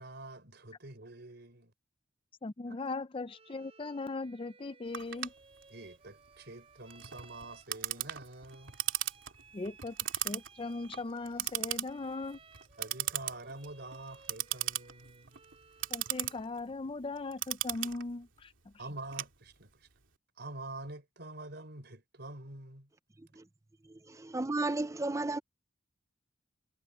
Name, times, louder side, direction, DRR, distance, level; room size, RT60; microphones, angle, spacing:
voice 1, 0.0-1.7 2.7-2.8 5.7-8.7 12.8-15.4 18.8-19.9 20.4-22.9, right 2 dB, 60° right, 4.7 m, -46 dB
voice 2, 2.4-5.3 9.5-10.0 10.2-12.4 15.9-18.5, left 3 dB, 30° left, 0.5 m, -39 dB
Bowed string instrument, 3.3-16.6, right 5 dB, 30° right, 4.3 m, -60 dB
Clock, 4.9-19.9, right 13 dB, 85° right, 2.7 m, -38 dB
voice 3, 24.1-25.4, right 2 dB, 15° right, 0.5 m, -33 dB
head